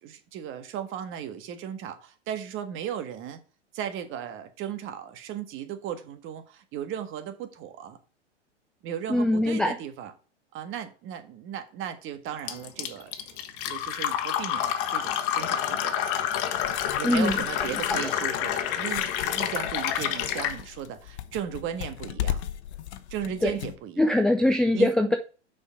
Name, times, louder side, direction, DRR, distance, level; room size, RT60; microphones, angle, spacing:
voice 1, 0.0-3.4 3.7-8.0 8.8-10.1 10.5-13.1 13.6-16.0 17.0-22.4 23.1-24.1 24.7-24.9, right 9 dB, 35° right, 1.6 m, -36 dB
voice 2, 9.1-9.8 17.0-17.4 17.9-18.1 23.4-23.5 24.0-25.2, left 1 dB, ahead, 0.4 m, -22 dB
Fill (with liquid), 12.5-20.6, left 10 dB, 50° left, 1.4 m, -28 dB
sound 1, 16.5-23.8, left 11 dB, 65° left, 1.0 m, -37 dB
6.4 x 5.5 x 5.7 m
hypercardioid pair, 110°, 36 cm